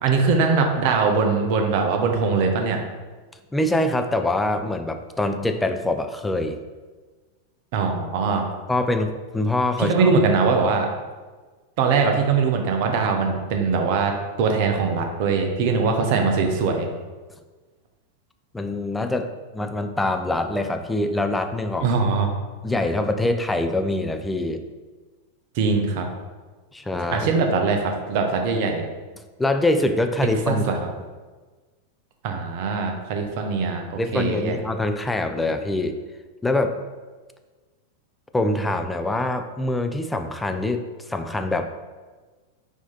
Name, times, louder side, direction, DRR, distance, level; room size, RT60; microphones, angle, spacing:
voice 1, 0.0-2.8 7.7-8.5 9.8-10.9 11.8-16.9 21.8-22.3 25.5-26.1 27.1-28.8 30.5-30.7 32.2-33.9 34.1-34.6, right 4 dB, 45° right, 3 dB, 0.7 m, -21 dB
voice 2, 3.5-6.6 8.7-10.1 18.5-22.0 22.6-24.6 26.7-27.3 29.4-30.6 34.0-36.0 36.4-36.8 38.3-40.8 41.1-41.7, left 2 dB, 5° left, 6 dB, 0.4 m, -24 dB
4.8 x 2.8 x 3.9 m, 1.3 s
figure-of-eight pair, 90°, 0 cm